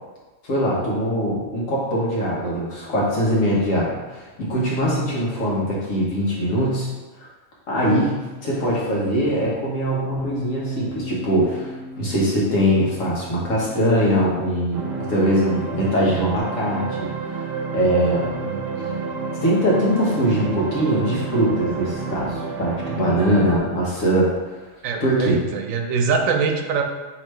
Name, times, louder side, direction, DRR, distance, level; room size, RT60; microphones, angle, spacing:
voice 1, 0.4-6.9 7.2-7.3 7.7-18.3 18.8-18.9 19.4-24.6 25.0-25.4, equal, 75° left, -5 dB, 1.5 m, -22 dB
Bass guitar, 10.2-16.4, left 1 dB, 50° left, 1.6 m, -38 dB
sound 1, 14.7-23.6, right 5 dB, 55° right, 0.5 m, -30 dB
voice 2, 18.4-19.1 24.8-26.8, right 5 dB, 80° right, 5 dB, 1.0 m, -24 dB
4.8 x 3.2 x 3.2 m, 1.2 s
omnidirectional pair, 1.4 m